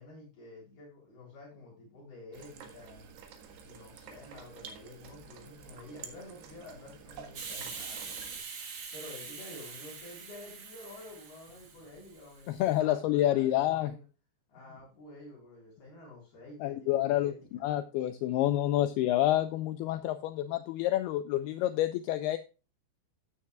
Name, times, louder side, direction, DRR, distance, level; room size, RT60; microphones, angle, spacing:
voice 1, 0.0-3.1 3.6-8.3 8.9-14.0 14.5-17.6, left 2 dB, 60° left, -4 dB, 5.8 m, -50 dB
sound 1, 2.3-8.4, right 7 dB, 75° right, 3.5 m, -50 dB
Hiss, 7.3-12.7, right 5 dB, 50° right, 1.6 m, -44 dB
voice 2, 12.5-13.9 16.6-22.4, left 13 dB, 80° left, 9 dB, 2.3 m, -28 dB
14.0 x 8.7 x 2.3 m, 0.30 s
omnidirectional pair, 5.1 m